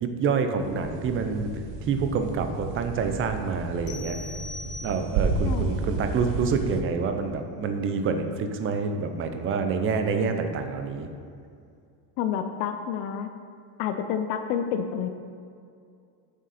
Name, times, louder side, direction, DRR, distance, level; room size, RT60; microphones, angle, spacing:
voice 1, 0.0-1.5 1.8-4.2 4.8-11.1, right 5 dB, 25° right, 6 dB, 0.5 m, -27 dB
sound 1, 0.6-6.8, right 3 dB, 70° right, 1.1 m, -32 dB
sound 2, 3.9-5.4, left 2 dB, 25° left, 0.8 m, -41 dB
voice 2, 5.4-5.8 12.2-13.3 13.8-15.1, left 8 dB, 60° left, 7 dB, 0.6 m, -29 dB
7.4 x 6.4 x 4.2 m, 2.4 s
cardioid pair, 145°, 48 cm